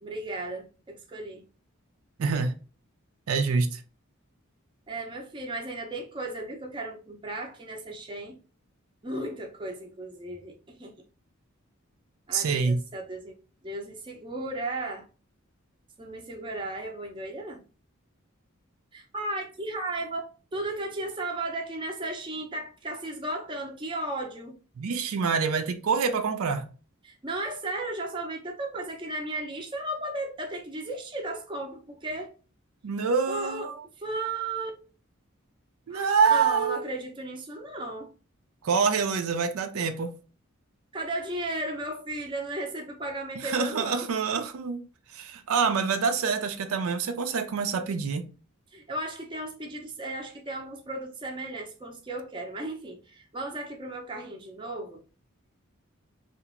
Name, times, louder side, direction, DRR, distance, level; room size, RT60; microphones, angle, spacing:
voice 1, 0.0-1.4 4.9-8.4 9.0-10.9 12.3-13.4 13.6-15.1 16.0-17.6 18.9-24.6 27.0-32.3 33.3-33.7 34.0-34.8 35.9-36.0 36.3-38.1 40.9-44.1 48.7-55.0, right 2 dB, 20° right, 0.5 m, -35 dB
voice 2, 2.2-2.5 3.3-3.8 12.3-12.8 24.8-26.7 32.8-33.8 35.9-36.9 38.6-40.1 43.4-44.8 45.1-48.2, right 5 dB, 80° right, 0.4 m, -26 dB
2.9 x 2.5 x 2.4 m
head